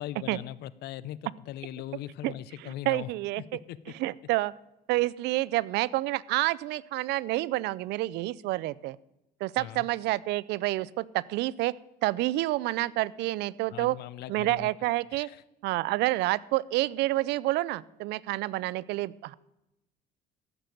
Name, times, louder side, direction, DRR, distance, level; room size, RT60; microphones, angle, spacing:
voice 1, 0.0-3.1 3.4-3.9 9.6-9.9 13.7-14.7 15.1-15.4, left 13 dB, 75° left, 19 dB, 0.6 m, -40 dB
voice 2, 2.6-3.6 4.0-4.5 4.9-9.0 9.4-11.7 12.0-14.0 14.3-15.3 15.6-19.3, right 18 dB, 85° right, 21 dB, 0.5 m, -28 dB
15.0 x 6.7 x 9.2 m, 0.93 s
cardioid pair, 110°, 17 cm